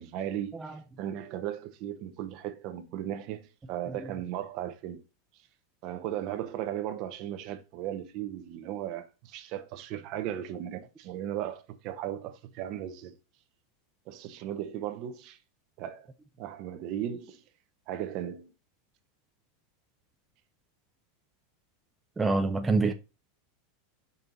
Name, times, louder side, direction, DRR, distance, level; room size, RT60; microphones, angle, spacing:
voice 1, 0.0-5.0 5.8-13.2 14.1-15.4 15.8-16.1 16.4-17.4 17.9-18.5, right 11 dB, 50° right, 0.9 m, -36 dB
voice 2, 22.2-22.9, right 3 dB, 15° right, 0.6 m, -26 dB
5.5 x 4.5 x 3.9 m
supercardioid pair, 120°, 0 cm